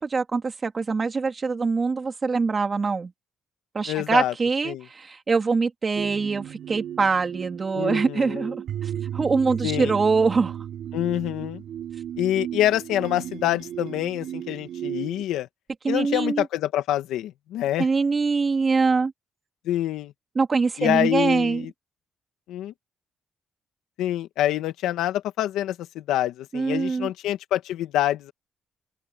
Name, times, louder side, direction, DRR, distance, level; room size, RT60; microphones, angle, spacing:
voice 1, 0.0-3.1 3.7-8.6 8.8-10.6 15.8-16.4 17.8-19.1 20.3-21.6 26.5-27.1, right 4 dB, 35° right, 3.1 m, -24 dB
voice 2, 3.9-4.3 4.6-4.9 7.7-8.5 9.6-9.9 10.9-11.6 12.2-15.5 15.9-17.9 19.7-20.1 20.8-21.7 22.5-22.7 24.0-28.3, left 13 dB, 90° left, 1.9 m, -26 dB
sound 1, 6.0-15.2, right 10 dB, 70° right, 5.2 m, -34 dB
open air
cardioid pair, 90°, 0 cm